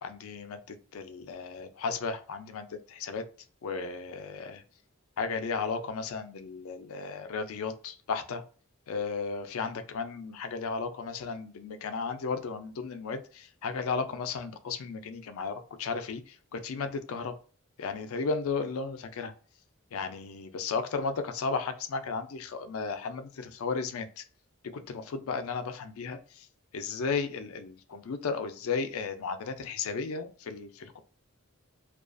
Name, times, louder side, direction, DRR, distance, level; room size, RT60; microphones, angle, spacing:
voice 1, 0.0-3.2 3.6-4.6 5.2-8.4 8.9-17.3 17.8-19.3 19.9-24.2 24.9-26.5 26.7-31.0, left 4 dB, 80° left, 9 dB, 0.4 m, -34 dB
2.4 x 2.3 x 2.2 m, 0.40 s
head